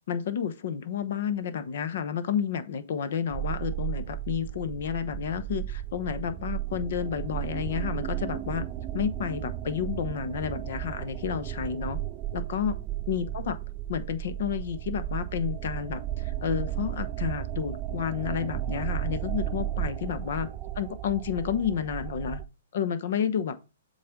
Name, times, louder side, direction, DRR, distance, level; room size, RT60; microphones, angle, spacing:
voice 1, 0.1-8.6 8.9-12.0 12.3-12.8 13.1-13.5 13.9-20.5 20.7-22.4 22.7-23.6, left 8 dB, 60° left, 1.0 m, -31 dB
sound 1, 3.3-22.4, right 12 dB, 30° right, 0.6 m, -34 dB
7.6 x 4.1 x 3.7 m
hypercardioid pair, 130°, 0 cm